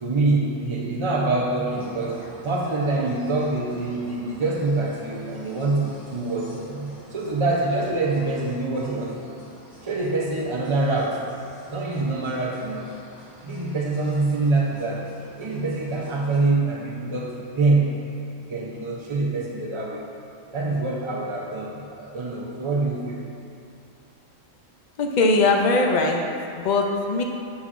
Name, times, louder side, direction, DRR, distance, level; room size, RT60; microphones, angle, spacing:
voice 1, 0.0-9.4 9.8-11.2 11.7-12.9 13.4-15.1 15.4-17.9 18.4-20.0 20.5-23.2, right 3 dB, 45° right, -4 dB, 0.3 m, -25 dB
sound 1, 1.7-16.4, equal, 30° left, 1.5 m, -48 dB
voice 2, 25.0-26.2 26.6-27.2, left 3 dB, 60° left, 2 dB, 0.4 m, -20 dB
7.0 x 6.2 x 2.5 m, 2.7 s
omnidirectional pair, 1.3 m